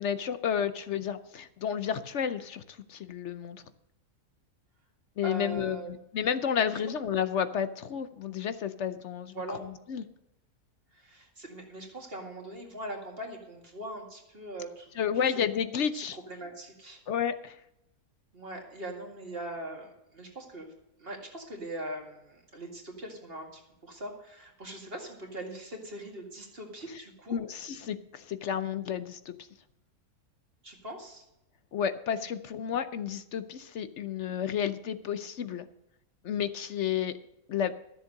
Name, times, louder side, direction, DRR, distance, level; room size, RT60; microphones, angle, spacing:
voice 1, 0.0-3.6 5.2-5.8 6.1-9.4 9.9-10.0 15.0-16.2 17.1-17.6 27.3-29.4 31.7-35.7 36.2-37.2 37.5-37.7, left 8 dB, 60° left, 12 dB, 0.8 m, -31 dB
voice 2, 5.2-5.9 9.3-9.6 10.9-15.3 15.9-17.0 18.3-20.7 21.0-27.4 30.6-31.2, right 1 dB, 40° right, 1 dB, 2.3 m, -41 dB
13.0 x 7.4 x 6.4 m, 0.85 s
omnidirectional pair, 1.6 m